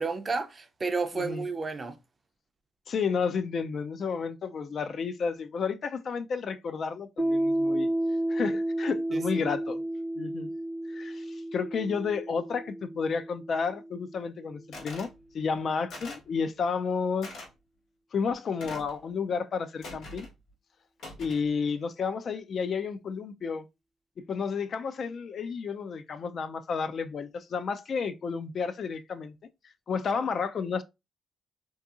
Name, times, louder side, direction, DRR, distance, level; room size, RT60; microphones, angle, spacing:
voice 1, 0.0-2.0 9.1-9.2, right 4 dB, 35° right, 0.4 m, -31 dB
voice 2, 1.1-1.5 2.9-7.9 8.3-9.8 10.2-10.5 10.9-17.3 18.1-20.3 21.2-23.6 24.3-29.4 29.6-30.8, left 5 dB, 55° left, 0.3 m, -31 dB
Piano, 7.2-14.4, right 1 dB, 15° left, 0.6 m, -31 dB
sound 1, 14.7-15.1 15.9-16.3 17.2-17.5 18.6-19.0 19.8-20.3 21.0-21.5, left 2 dB, 75° left, 1.2 m, -43 dB
2.6 x 2.6 x 2.3 m
cardioid pair, 90°, 0 cm